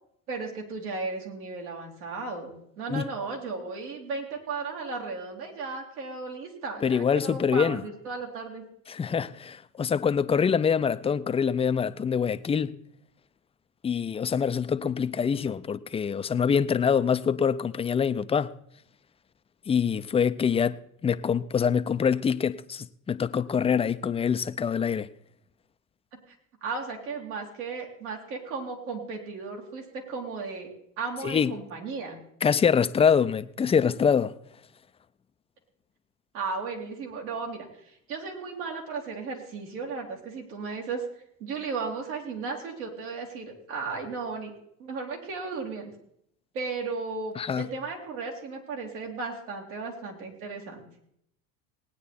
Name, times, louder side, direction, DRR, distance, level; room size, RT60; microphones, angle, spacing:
voice 1, 0.3-8.6 26.1-26.2 26.6-32.2 36.3-37.7 38.1-41.1 41.4-44.5 44.8-45.9 46.5-50.8, right 4 dB, 80° right, 3.3 m, -35 dB
voice 2, 6.8-7.8 8.9-12.7 13.8-18.5 19.7-20.8 21.0-25.1 31.2-31.5 32.4-34.3 47.4-47.7, left 7 dB, 15° left, 0.4 m, -25 dB
18.5 x 9.4 x 4.2 m
hypercardioid pair, 90°, 43 cm